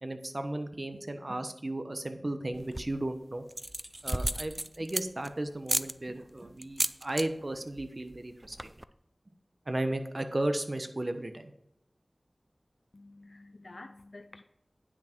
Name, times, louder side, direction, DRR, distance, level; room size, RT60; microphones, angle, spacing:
voice 1, 0.0-3.4 4.0-8.7 9.7-11.5, right 1 dB, 45° right, 1.1 m, -35 dB
sound 1, 2.5-3.0 3.5-5.3 5.7-5.9 6.6-7.3 7.5-7.9 8.1-8.2 8.4-8.8, right 1 dB, 25° right, 0.4 m, -33 dB
voice 2, 12.9-14.4, left 2 dB, 60° left, 0.5 m, -49 dB
9.7 x 6.2 x 4.5 m
wide cardioid pair, 40°, 0 cm